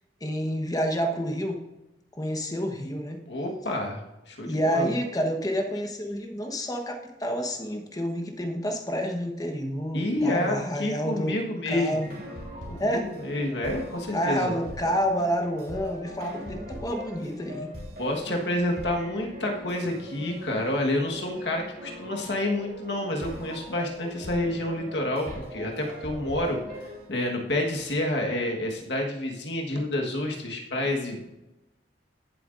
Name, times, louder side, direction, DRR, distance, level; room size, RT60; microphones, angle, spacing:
voice 1, 0.2-1.6 2.2-3.2 4.4-11.4 11.7-12.1 12.8-13.1 14.1-17.7, equal, 20° left, 5 dB, 1.1 m, -29 dB
voice 2, 3.3-4.0 4.3-4.9 9.9-12.1 12.7-14.5 18.0-26.6 27.1-31.3, left 1 dB, 80° left, 1 dB, 1.4 m, -29 dB
sound 1, 11.9-27.1, equal, 55° right, 3.0 m, -41 dB
15.5 x 7.7 x 2.6 m, 0.99 s
head